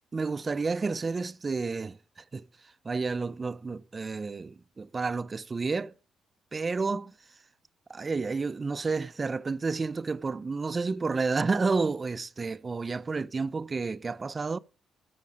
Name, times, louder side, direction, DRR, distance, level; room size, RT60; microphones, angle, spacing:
voice 1, 0.1-2.5 2.8-5.9 6.5-7.1 7.9-14.6, right 4 dB, 30° right, 0.4 m, -30 dB
13.5 x 5.0 x 5.1 m
cardioid pair, 90°, 0 cm